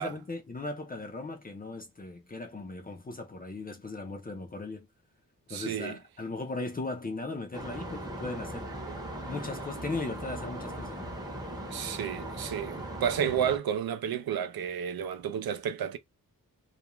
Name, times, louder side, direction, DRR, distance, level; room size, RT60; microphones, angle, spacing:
voice 1, 0.0-4.9 5.5-8.7 9.3-11.1, left 3 dB, 25° left, 0.5 m, -38 dB
voice 2, 5.5-6.0 8.9-9.0 11.7-16.0, right 8 dB, 85° right, 0.5 m, -31 dB
sound 1, 7.5-13.6, right 1 dB, 10° right, 0.7 m, -39 dB
2.4 x 2.1 x 3.0 m
wide cardioid pair, 145°, 36 cm